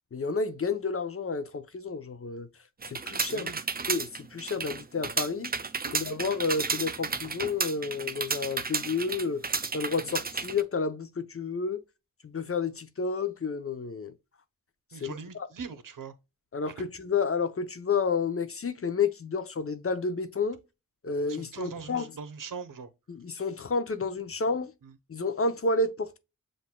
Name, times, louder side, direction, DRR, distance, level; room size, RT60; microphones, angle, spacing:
voice 1, 0.1-2.5 2.9-3.5 3.9-5.5 5.9-9.5 9.7-11.8 12.2-14.1 15.0-15.5 16.5-20.6 21.0-22.1 23.1-24.7 25.1-26.2, left 4 dB, 40° left, 0.7 m, -30 dB
sound 1, 2.8-10.6, right 4 dB, 30° right, 0.5 m, -32 dB
voice 2, 14.9-16.1 21.3-22.9, right 5 dB, 70° right, 0.9 m, -41 dB
7.4 x 2.6 x 2.2 m
cardioid pair, 60°, 34 cm